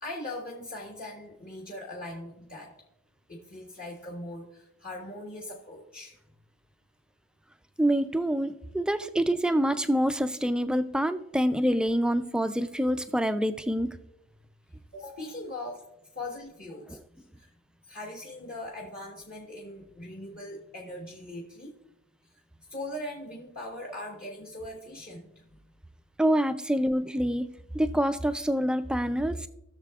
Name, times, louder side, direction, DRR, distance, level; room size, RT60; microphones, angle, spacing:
voice 1, 0.0-2.7 3.3-6.2 14.9-15.8 16.1-17.5 17.8-21.7 22.7-25.6, left 1 dB, 40° left, -3 dB, 1.3 m, -40 dB
voice 2, 7.8-13.9 26.2-27.5 27.7-29.5, equal, 5° right, 11 dB, 0.3 m, -26 dB
17.5 x 6.7 x 2.4 m, 0.88 s
head